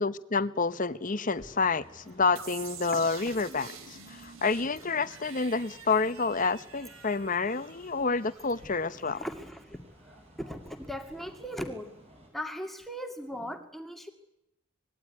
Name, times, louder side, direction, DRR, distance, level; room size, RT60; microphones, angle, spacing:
voice 1, 0.0-9.2, left 4 dB, 35° left, 1.0 m, -29 dB
sound 1, 1.3-12.3, right 1 dB, 30° right, 7.8 m, -56 dB
sound 2, 2.4-9.1, right 6 dB, 65° right, 3.3 m, -47 dB
voice 2, 9.0-9.8 10.1-11.9 12.3-14.1, equal, ahead, 2.3 m, -38 dB
25.5 x 21.0 x 9.8 m
head